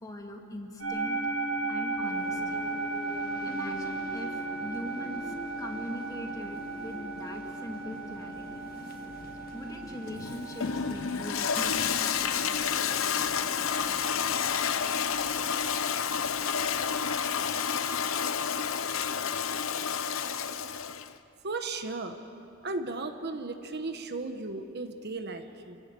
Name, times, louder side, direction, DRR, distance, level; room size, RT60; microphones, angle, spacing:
voice 1, 0.0-1.1 1.7-2.6 3.4-8.7 9.5-12.0, left 1 dB, 20° left, 2 dB, 2.1 m, -41 dB
sound 1, 0.8-17.0, right 3 dB, 80° right, 7.5 m, -37 dB
sound 2, 2.0-14.4, left 1 dB, 45° left, 1.5 m, -46 dB
Toilet flush, 10.1-21.1, left 7 dB, 70° left, 0.8 m, -30 dB
voice 2, 21.4-22.2 22.6-25.8, right 3 dB, 55° right, 8 dB, 1.2 m, -35 dB
28.0 x 17.0 x 8.3 m, 2.8 s
head